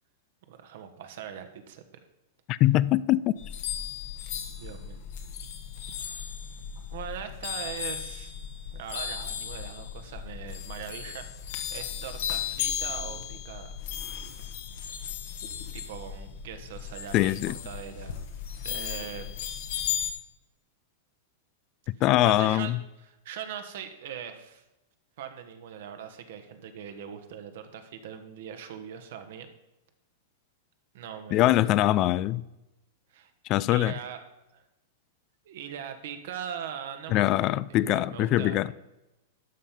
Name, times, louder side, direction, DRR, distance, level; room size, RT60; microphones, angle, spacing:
voice 1, 0.5-1.9 4.5-5.0 6.9-8.3 8.7-13.7 14.8-14.9 15.7-18.2 18.6-19.3 22.0-22.7 23.0-24.6 25.2-29.5 30.9-31.7 33.1-33.3 33.7-34.2 34.5-34.6 35.4-38.7, right 8 dB, 65° right, 1.3 m, -41 dB
voice 2, 2.5-3.3 17.1-17.5 22.0-22.8 31.3-32.4 33.5-33.9 37.1-38.7, left 15 dB, 40° left, 0.3 m, -23 dB
sound 1, 3.4-20.1, left 9 dB, 60° left, 1.3 m, -36 dB
12.0 x 5.6 x 5.3 m
hypercardioid pair, 105°, 0 cm